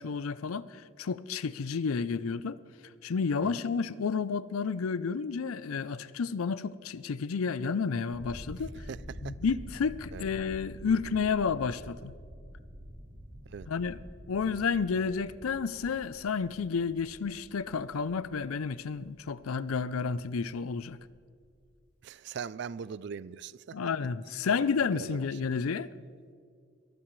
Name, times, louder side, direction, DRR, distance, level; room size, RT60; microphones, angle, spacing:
voice 1, 0.0-2.6 3.0-8.7 9.2-12.1 13.7-14.0 14.3-21.0 23.7-25.9, left 5 dB, 90° left, 0.5 m, -31 dB
sound 1, 8.1-21.7, equal, 70° right, 4.5 m, -48 dB
voice 2, 22.0-23.8 24.9-25.2, right 6 dB, 55° right, 0.3 m, -40 dB
22.5 x 15.0 x 3.2 m
head